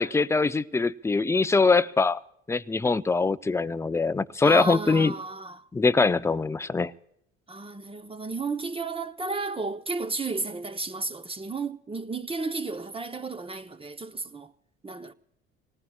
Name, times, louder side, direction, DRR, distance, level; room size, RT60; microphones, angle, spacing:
voice 1, 0.0-2.2 2.5-5.1 5.7-6.9, left 4 dB, 10° left, 0.5 m, -23 dB
voice 2, 4.4-5.7 7.5-14.5 14.8-15.1, right 3 dB, 20° right, 0.9 m, -33 dB
26.5 x 19.0 x 2.4 m
hypercardioid pair, 65°, 30 cm